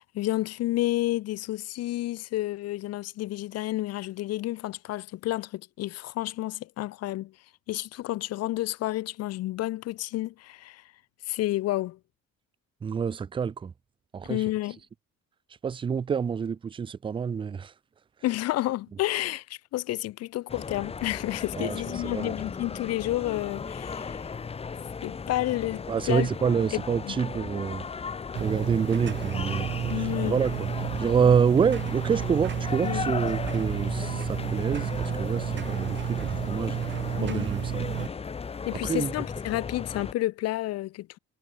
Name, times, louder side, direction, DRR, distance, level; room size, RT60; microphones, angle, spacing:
voice 1, 0.0-7.3 7.7-10.8 11.3-12.0 14.2-14.8 18.2-24.3 25.0-26.3 27.1-27.2 29.9-30.4 32.8-33.0 37.2-37.5 38.6-41.2, left 16 dB, 60° left, 0.5 m, -30 dB
voice 2, 12.8-13.7 14.1-14.4 15.6-17.7 21.6-22.3 25.9-27.9 28.4-30.7 31.0-37.9 38.7-39.1, right 6 dB, 20° right, 0.4 m, -27 dB
sound 1, 20.5-40.1, left 5 dB, 20° left, 0.9 m, -36 dB
sound 2, 28.3-38.1, right 10 dB, 40° right, 0.9 m, -31 dB
cardioid pair, 160°, 29 cm